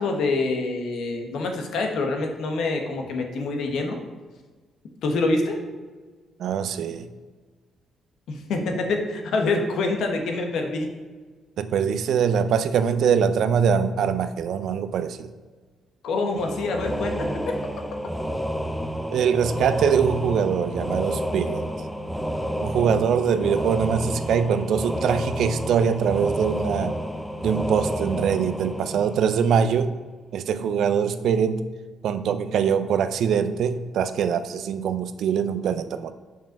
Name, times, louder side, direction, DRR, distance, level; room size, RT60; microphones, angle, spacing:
voice 1, 0.0-4.0 5.0-5.6 8.3-10.9 16.0-17.6, left 3 dB, 75° left, 3 dB, 1.2 m, -26 dB
voice 2, 6.4-7.1 11.6-15.3 19.1-21.6 22.6-26.9 27.4-29.9 30.3-31.6 32.0-36.1, right 7 dB, 70° right, 12 dB, 0.5 m, -23 dB
sound 1, 16.4-29.8, equal, ahead, 0.6 m, -30 dB
5.4 x 5.3 x 5.7 m, 1.4 s
cardioid pair, 90°, 0 cm